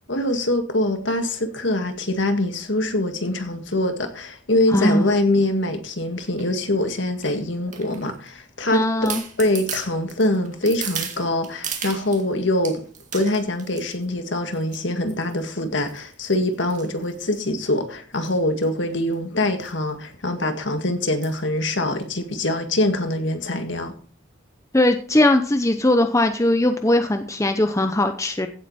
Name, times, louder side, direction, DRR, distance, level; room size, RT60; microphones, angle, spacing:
voice 1, 0.1-8.9 9.4-12.8 13.1-23.9, left 1 dB, 60° left, 2.0 m, -24 dB
voice 2, 4.7-5.1 8.7-9.2 24.7-28.5, left 1 dB, 15° left, 0.8 m, -19 dB
sound 1, 6.2-6.5 7.2-8.3 8.7-8.8 9.1-12.2 12.6-14.0 14.5-14.8 15.1-15.4 15.9-17.6 18.1-18.4 18.6-18.7 18.9-19.1 19.6-19.8 20.1-20.2 21.2-21.5 22.0-22.1, right 7 dB, 35° right, 2.2 m, -35 dB
16.0 x 8.0 x 4.3 m
head